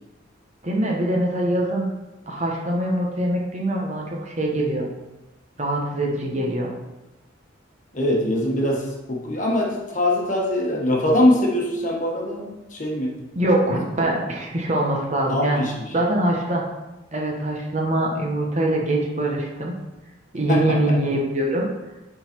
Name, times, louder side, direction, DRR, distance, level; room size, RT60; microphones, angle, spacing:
voice 1, 0.6-1.9 2.3-4.9 5.6-6.7 13.3-15.6 15.9-16.6 17.1-19.7 20.3-21.7, right 1 dB, 35° right, -1 dB, 1.1 m, -23 dB
voice 2, 7.9-13.1 15.3-15.9 20.5-20.9, left 1 dB, 40° left, -2 dB, 1.3 m, -22 dB
8.7 x 4.0 x 4.4 m, 1.0 s
head